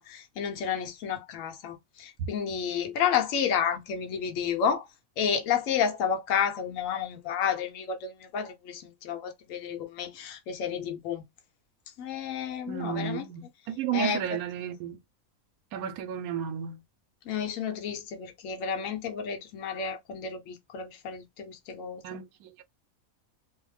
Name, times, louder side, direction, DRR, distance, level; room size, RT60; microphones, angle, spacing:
voice 1, 0.0-4.8 5.2-11.2 12.0-13.3 13.9-14.2 17.3-22.0, left 7 dB, 70° left, 1.0 m, -31 dB
voice 2, 12.7-15.0 15.7-16.8 22.0-22.6, right 8 dB, 85° right, 1.0 m, -33 dB
2.7 x 2.0 x 3.1 m
omnidirectional pair, 1.5 m